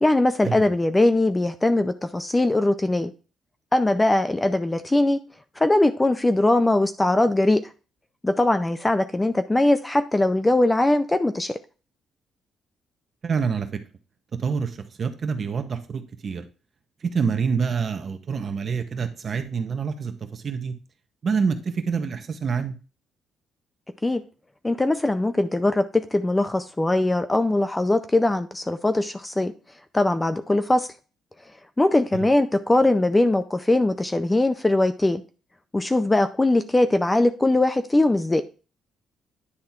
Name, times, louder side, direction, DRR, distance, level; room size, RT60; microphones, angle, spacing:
voice 1, 0.0-3.1 3.7-5.2 5.6-7.6 8.2-11.6 24.0-24.2 24.6-29.5 29.9-30.9 31.8-35.2 35.7-38.4, left 2 dB, 15° left, 11 dB, 0.5 m, -21 dB
voice 2, 13.2-13.8 14.3-16.4 17.0-20.7 21.2-22.7 32.1-32.3, right 5 dB, 40° right, 8 dB, 0.9 m, -27 dB
9.8 x 3.5 x 4.3 m, 0.34 s
cardioid pair, 130°, 0 cm